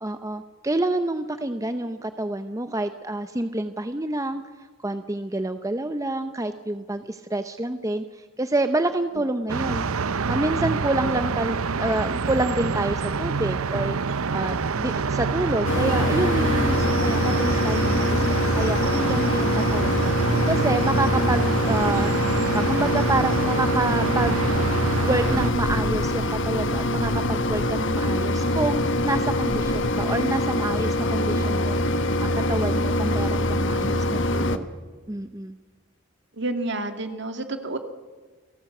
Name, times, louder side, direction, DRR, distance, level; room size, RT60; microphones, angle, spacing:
voice 1, 0.0-4.4 4.8-20.1 20.5-22.1 22.5-24.6 25.0-34.7 35.1-35.5, right 2 dB, 15° right, 9 dB, 0.7 m, -28 dB
voice 2, 9.1-9.5 36.3-37.8, right 2 dB, 55° right, 7 dB, 2.1 m, -30 dB
sound 1, 9.5-25.5, right 4 dB, 85° right, 0.8 m, -26 dB
Mechanisms, 15.6-34.6, left 1 dB, 60° left, 1.3 m, -24 dB
29.0 x 18.0 x 7.8 m, 1.5 s
head